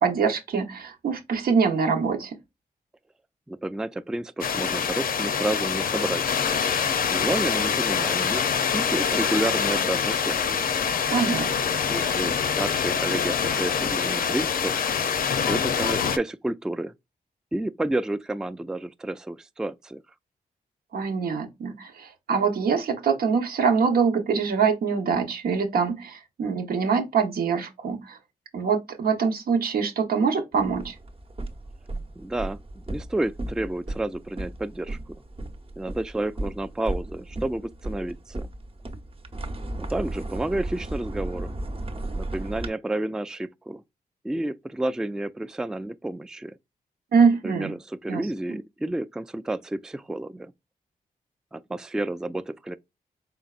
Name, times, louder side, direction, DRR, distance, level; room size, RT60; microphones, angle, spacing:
voice 1, 0.0-2.4 11.1-11.5 20.9-28.2 28.5-30.9 47.1-47.7 48.1-48.2, right 5 dB, 80° right, 0.9 m, -24 dB
voice 2, 3.5-6.3 7.0-8.5 8.7-10.6 11.9-14.8 15.5-16.9 17.5-20.0 32.2-32.6 32.9-35.2 35.8-38.5 39.8-41.5 42.1-43.8 44.2-46.5 47.4-50.5 51.5-52.8, right 1 dB, 5° right, 0.3 m, -30 dB
sound 1, 4.4-16.2, left 7 dB, 70° left, 0.5 m, -25 dB
sound 2, 30.5-42.7, right 2 dB, 35° right, 0.9 m, -35 dB
3.9 x 3.4 x 2.4 m
cardioid pair, 55°, 15 cm